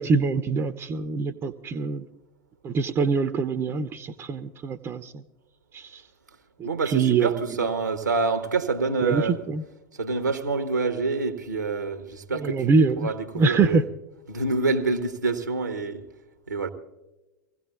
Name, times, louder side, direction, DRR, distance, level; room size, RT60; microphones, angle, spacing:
voice 1, 0.0-2.1 2.6-5.2 5.7-6.0 6.6-7.4 9.0-9.6 12.3-13.1 13.3-13.8, right 4 dB, 25° right, 0.7 m, -24 dB
voice 2, 6.6-9.4 9.9-13.8 14.3-16.0 16.5-16.7, right 3 dB, 80° right, 1.2 m, -27 dB
25.5 x 16.5 x 2.4 m
figure-of-eight pair, 85°, 10 cm